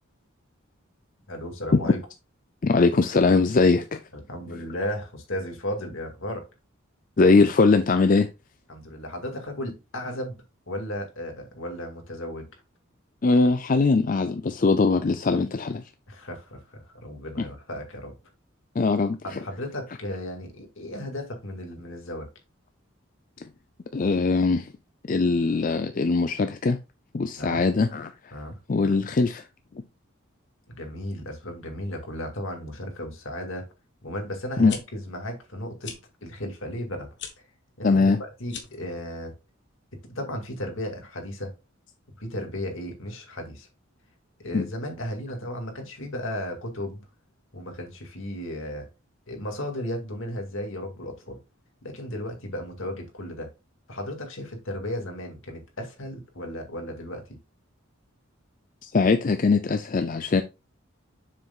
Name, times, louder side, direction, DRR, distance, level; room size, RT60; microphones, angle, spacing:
voice 1, 1.3-2.0 4.1-6.4 8.7-10.4 10.7-12.5 16.1-18.1 19.2-22.3 27.4-27.6 28.3-28.6 30.7-33.6 34.0-35.9 36.2-37.1 37.8-39.3 40.2-41.5 42.2-43.7 44.4-47.0 47.5-48.9 49.3-51.4 51.8-53.5 53.9-57.4, left 1 dB, 70° left, 2.1 m, -35 dB
voice 2, 2.6-4.0 7.2-8.3 13.2-15.8 17.4-17.5 18.8-19.4 23.9-24.7 25.1-26.8 27.1-28.1 28.7-29.4 34.6-34.7 37.8-38.2 44.5-44.7 58.8-60.4, left 3 dB, 40° left, 0.4 m, -21 dB
sound 1, 34.7-34.8 35.8-36.0 37.1-37.3 38.4-38.8, left 8 dB, 55° left, 1.2 m, -38 dB
7.5 x 6.5 x 2.4 m
head